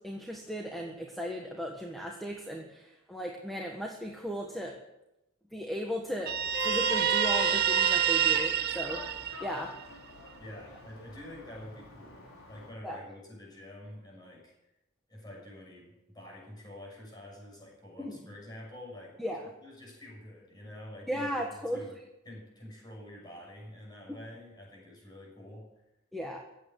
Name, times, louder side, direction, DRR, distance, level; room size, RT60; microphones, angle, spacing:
voice 1, 0.0-4.8 5.5-6.4 6.6-9.0 9.4-9.7 12.8-13.0 18.0-18.1 19.2-19.5 21.1-21.8 26.1-26.4, equal, ahead, 0 dB, 1.5 m, -36 dB
Vehicle horn car horn honking, 6.3-12.7, right 1 dB, 90° left, 4.4 m, -38 dB
Guitar, 6.3-9.8, right 10 dB, 50° right, 0.6 m, -28 dB
voice 2, 10.4-14.5 15.1-22.0 22.2-25.7, left 1 dB, 20° left, -2 dB, 6.9 m, -48 dB
15.5 x 9.1 x 9.6 m, 0.92 s
head